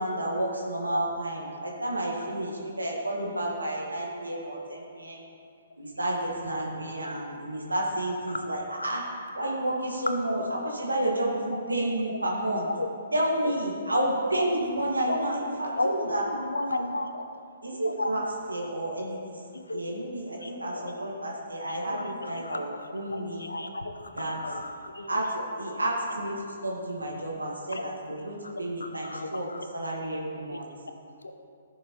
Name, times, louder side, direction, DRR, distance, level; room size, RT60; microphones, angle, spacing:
voice 1, 0.0-5.2 5.8-9.0 9.4-12.7 13.1-16.2 17.6-19.3 19.7-23.5 24.2-24.4 25.1-26.3 26.6-30.7, right 1 dB, 90° right, -2 dB, 1.6 m, -30 dB
voice 2, 16.3-17.2 17.8-18.1 19.5-19.8 20.4-20.9 21.7-25.1 27.7-27.8 28.4-28.5 28.8-29.6, left 2 dB, 85° left, 6 dB, 0.8 m, -34 dB
15.0 x 6.5 x 3.0 m, 2.4 s
figure-of-eight pair, 125°, 0 cm